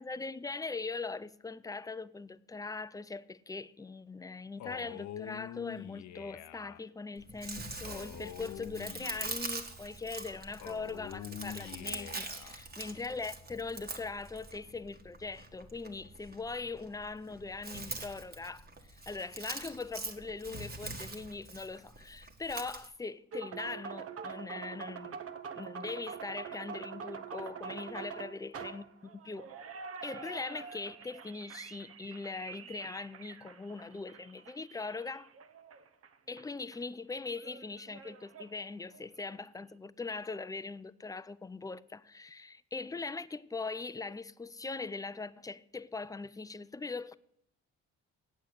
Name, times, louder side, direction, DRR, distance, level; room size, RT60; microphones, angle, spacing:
voice 1, 0.0-25.2 25.5-29.5 30.0-35.3 36.3-47.2, left 4 dB, 10° left, 0.4 m, -41 dB
Male speech man speaking, 4.6-6.8 7.8-9.7 10.6-12.6, left 10 dB, 65° left, 0.7 m, -45 dB
Chewing mastication, 7.2-22.9, right 3 dB, 30° right, 1.6 m, -44 dB
sound 1, 23.3-36.5 36.7-36.8 37.4-39.3, right 6 dB, 50° right, 1.0 m, -45 dB
8.5 x 7.8 x 8.1 m
cardioid pair, 90°, 30 cm